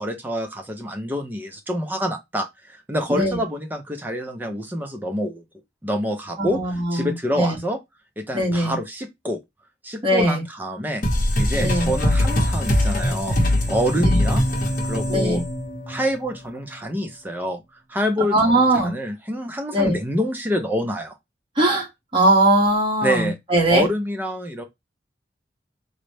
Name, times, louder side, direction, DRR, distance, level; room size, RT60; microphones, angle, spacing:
voice 1, 0.0-5.4 5.8-6.6 6.9-7.8 8.2-9.4 9.8-11.0 11.4-13.4 13.7-14.4 14.8-15.4 15.9-21.1 23.0-23.3 23.7-24.6, equal, 10° right, 0.5 m, -26 dB
voice 2, 6.4-7.6 8.3-8.8 10.0-10.4 11.6-11.9 14.0-14.2 15.1-15.4 18.3-18.9 19.7-20.0 21.5-23.9, right 1 dB, 25° right, 1.2 m, -20 dB
sound 1, 11.0-16.3, left 1 dB, 50° left, 0.8 m, -22 dB
3.9 x 2.1 x 3.1 m
head